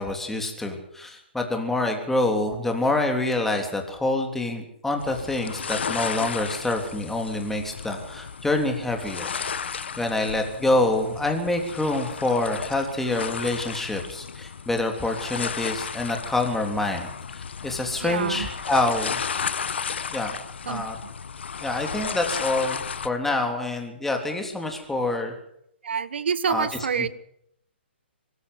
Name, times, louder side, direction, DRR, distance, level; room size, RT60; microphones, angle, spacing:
voice 1, 0.0-9.3 10.0-19.2 20.1-20.9 21.6-25.3 26.5-26.7 26.9-27.1, left 2 dB, 5° left, 3 dB, 3.4 m, -26 dB
sound 1, 5.0-23.1, left 6 dB, 70° left, 1.3 m, -34 dB
voice 2, 18.0-18.5 20.6-20.9 25.8-27.1, right 6 dB, 70° right, 18 dB, 1.2 m, -27 dB
23.5 x 14.5 x 8.1 m, 0.75 s
hypercardioid pair, 135°, 6 cm